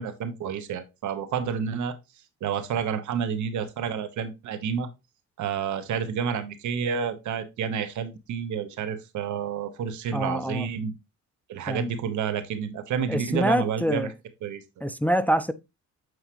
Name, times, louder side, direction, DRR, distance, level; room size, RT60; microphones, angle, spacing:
voice 1, 0.0-1.9 2.4-4.9 5.4-10.9 11.5-14.1 14.4-14.6, right 7 dB, 75° right, 1.2 m, -29 dB
voice 2, 10.1-10.7 11.7-11.9 13.1-14.1 14.8-15.5, equal, 5° left, 0.4 m, -25 dB
7.8 x 4.8 x 3.0 m
cardioid pair, 90°, 30 cm